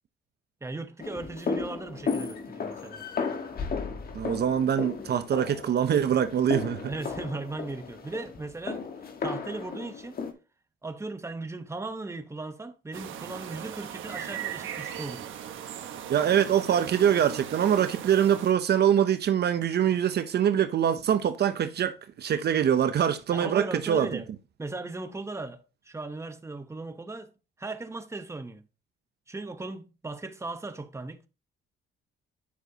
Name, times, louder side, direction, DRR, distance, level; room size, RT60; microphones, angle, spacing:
voice 1, 0.6-3.1 6.9-8.8 9.2-10.2 10.8-15.3 23.3-24.3 24.6-27.3 27.6-28.6 29.3-31.3, right 3 dB, 15° right, 1.0 m, -37 dB
sound 1, 1.0-10.3, left 5 dB, 50° left, 1.5 m, -35 dB
voice 2, 4.1-6.9 16.1-24.2, right 9 dB, 55° right, 0.7 m, -24 dB
sound 2, 12.9-18.5, right 9 dB, 80° right, 1.2 m, -38 dB
9.5 x 6.0 x 2.8 m
cardioid pair, 90°, 20 cm